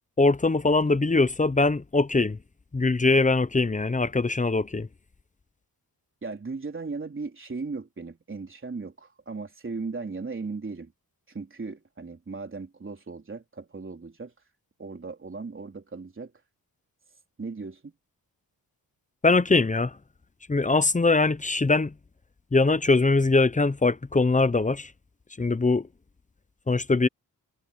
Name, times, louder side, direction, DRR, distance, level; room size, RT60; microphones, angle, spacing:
voice 1, 0.2-2.4 2.7-4.9 19.2-20.0 20.5-21.9 22.5-24.9 25.4-25.9 26.7-27.1, left 3 dB, 20° left, 0.8 m, -22 dB
voice 2, 6.2-10.9 11.3-14.3 14.8-16.3 17.4-17.9, right 4 dB, 35° right, 3.7 m, -37 dB
wide cardioid pair, 100°, 36 cm